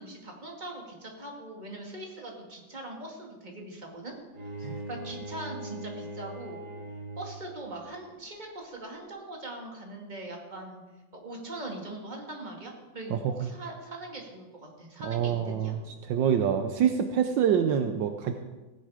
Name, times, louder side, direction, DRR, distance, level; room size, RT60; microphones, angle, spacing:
voice 1, 0.0-4.1 4.6-6.6 7.2-10.8 11.1-15.8, right 1 dB, 25° right, 1 dB, 2.3 m, -41 dB
Bowed string instrument, 4.3-7.6, right 1 dB, 55° right, 3.3 m, -40 dB
voice 2, 13.1-13.5 15.0-15.8 16.1-18.3, right 8 dB, 75° right, 7 dB, 1.4 m, -26 dB
16.5 x 10.0 x 5.0 m, 1.2 s
omnidirectional pair, 2.1 m